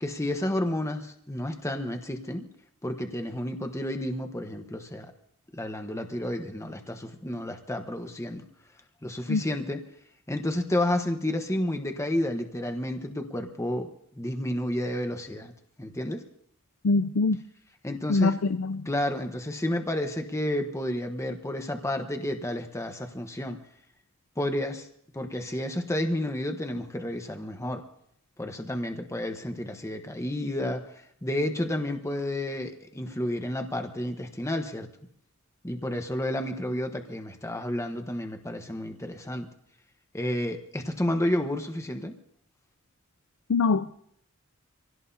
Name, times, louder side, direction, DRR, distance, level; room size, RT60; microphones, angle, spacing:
voice 1, 0.0-2.4 2.8-5.1 5.5-8.4 9.0-9.8 10.3-13.9 14.2-15.5 15.8-16.2 17.8-18.4 18.8-23.6 24.4-24.9 25.1-27.8 28.4-30.8 31.2-34.9 35.6-39.5 40.1-42.1, left 1 dB, 15° left, 5 dB, 1.1 m, -31 dB
voice 2, 16.8-17.4 18.1-18.9 43.5-43.8, left 3 dB, 85° left, 12 dB, 0.5 m, -23 dB
26.0 x 17.0 x 2.8 m, 0.70 s
head